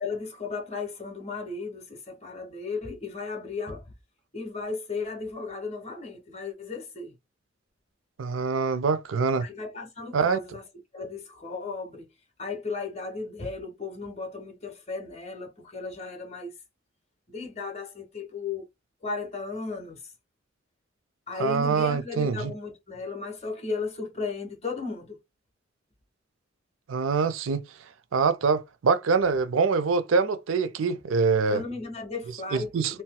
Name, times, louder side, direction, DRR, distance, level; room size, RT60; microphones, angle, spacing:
voice 1, 0.0-3.9 4.3-7.1 9.4-10.6 10.9-12.1 12.4-16.5 17.3-18.7 19.0-20.1 21.3-25.2 31.5-33.0, left 4 dB, 35° left, 1.1 m, -35 dB
voice 2, 8.2-9.5 10.1-10.4 21.4-22.5 26.9-27.6 28.1-31.6 32.5-33.0, right 5 dB, 80° right, 0.4 m, -24 dB
4.1 x 2.2 x 2.2 m
head